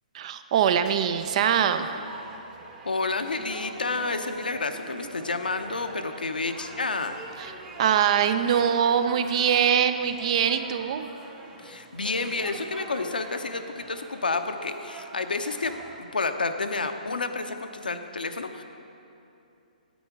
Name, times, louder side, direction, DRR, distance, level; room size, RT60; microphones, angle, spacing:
voice 1, 0.1-1.9 7.4-7.5 7.8-11.1, right 8 dB, 50° right, 10 dB, 0.6 m, -23 dB
sound 1, 0.7-16.0, right 2 dB, 20° right, 1.1 m, -44 dB
voice 2, 2.8-7.1 11.6-18.6, left 3 dB, 85° left, 7 dB, 0.7 m, -30 dB
9.2 x 8.7 x 4.6 m, 2.7 s
hypercardioid pair, 135°, 5 cm